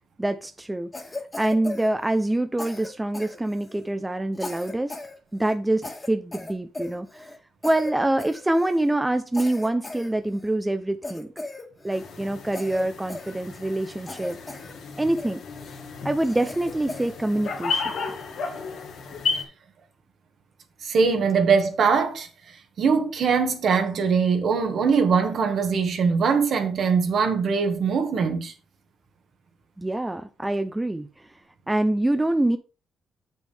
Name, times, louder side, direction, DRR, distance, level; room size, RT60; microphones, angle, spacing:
voice 1, 0.2-0.9 1.4-5.0 5.3-7.3 7.6-11.3 11.8-14.4 15.0-15.4 16.0-17.8 29.8-31.1 31.7-32.6, right 1 dB, 10° right, 0.5 m, -25 dB
Cough, 0.9-2.3 2.6-3.9 4.3-5.1 5.4-5.5 5.8-7.4 7.6-7.9 8.2-8.9 9.3-10.5 11.0-12.1 12.5-13.8 14.1-14.7 15.2-15.7 16.2-17.1, left 2 dB, 20° left, 1.6 m, -37 dB
sound 1, 11.9-19.4, left 4 dB, 70° left, 1.6 m, -33 dB
voice 2, 20.8-22.3 22.8-28.5, right 5 dB, 60° right, 1.6 m, -22 dB
7.4 x 6.2 x 3.5 m
cardioid pair, 90°, 0 cm